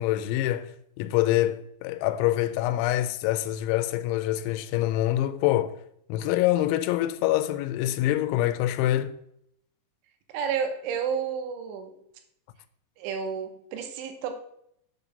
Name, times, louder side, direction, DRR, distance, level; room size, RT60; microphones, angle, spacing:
voice 1, 0.0-5.8 6.1-9.1, left 14 dB, 85° left, 2.9 m, -25 dB
voice 2, 10.3-11.9 13.0-14.4, right 6 dB, 85° right, 3.3 m, -31 dB
7.3 x 4.1 x 6.7 m
omnidirectional pair, 5.3 m